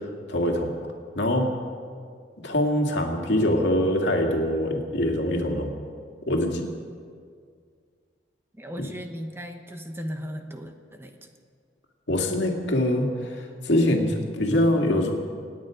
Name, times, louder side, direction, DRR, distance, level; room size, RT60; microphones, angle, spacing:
voice 1, 0.3-0.7 1.2-1.5 2.4-5.7 6.3-6.6 8.8-8.9 12.1-15.1, left 1 dB, 75° left, 1 dB, 2.2 m, -23 dB
voice 2, 8.5-11.2, equal, 15° right, 5 dB, 1.0 m, -37 dB
27.0 x 9.4 x 5.1 m, 2.1 s
head